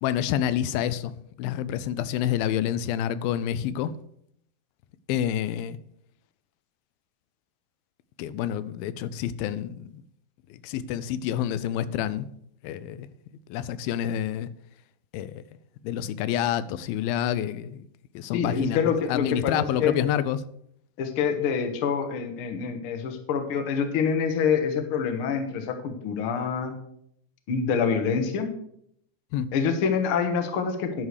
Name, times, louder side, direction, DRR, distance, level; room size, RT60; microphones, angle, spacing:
voice 1, 0.0-1.1 1.4-3.9 5.1-5.8 8.2-10.0 10.5-12.3 12.6-13.1 13.5-14.5 15.1-15.4 15.8-17.9 18.1-20.4 29.3-29.5, left 10 dB, 90° left, 2.4 m, -28 dB
voice 2, 18.3-19.9 21.0-26.7 27.5-28.5 29.5-31.1, left 6 dB, 70° left, 1.3 m, -26 dB
11.0 x 4.8 x 6.6 m
omnidirectional pair, 4.1 m